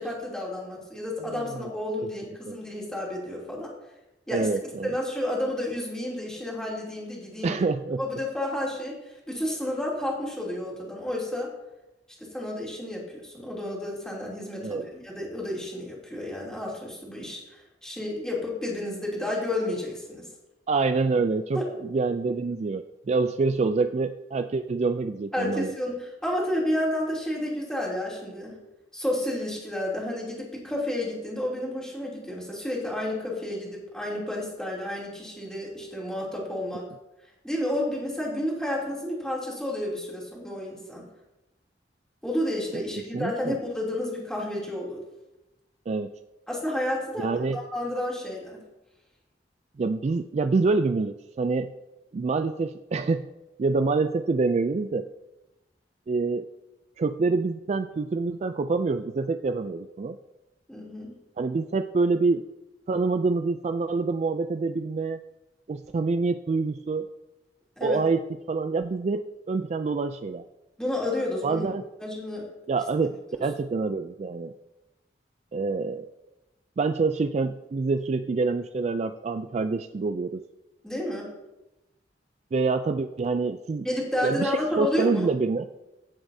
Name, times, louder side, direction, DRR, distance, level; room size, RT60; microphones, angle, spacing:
voice 1, 0.0-3.7 4.3-4.5 4.8-7.6 8.0-11.5 12.2-20.3 21.5-21.7 25.3-28.6 28.9-36.8 37.4-41.0 42.2-45.0 46.5-47.3 47.5-48.6 60.7-61.1 67.8-68.0 70.8-71.7 72.0-72.5 80.8-81.3 83.8-85.2, left 1 dB, 5° left, -5 dB, 2.9 m, -31 dB
voice 2, 4.3-5.0 7.4-8.0 14.6-14.8 20.7-25.7 42.7-42.8 43.1-43.6 45.9-46.1 47.2-47.6 49.8-51.7 52.1-53.2 53.6-55.1 56.1-56.5 57.0-60.2 61.4-62.4 62.9-65.2 65.7-67.1 67.8-68.2 68.5-70.4 71.4-71.8 72.7-73.1 73.4-74.5 75.5-76.1 76.8-80.4 82.5-83.9 84.2-85.6, right 4 dB, 40° right, 9 dB, 0.3 m, -26 dB
16.0 x 7.1 x 2.7 m, 0.99 s
head